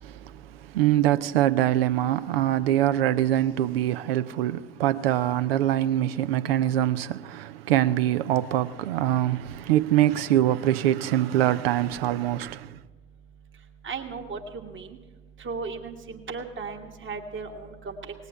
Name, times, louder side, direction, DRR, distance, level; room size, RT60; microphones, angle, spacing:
voice 1, 0.0-12.8, right 12 dB, 80° right, 0.5 m, -24 dB
voice 2, 13.8-15.0 15.4-18.1, right 4 dB, 40° right, 1.4 m, -36 dB
18.5 x 8.1 x 6.7 m
figure-of-eight pair, 40°, 30 cm